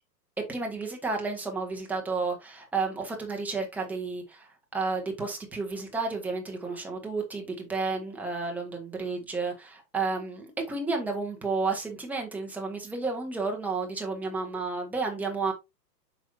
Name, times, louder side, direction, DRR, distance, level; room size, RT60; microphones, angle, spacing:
voice 1, 0.4-15.5, right 4 dB, 5° right, 0.9 m, -31 dB
7.3 x 5.4 x 2.6 m
figure-of-eight pair, 120°, 50 cm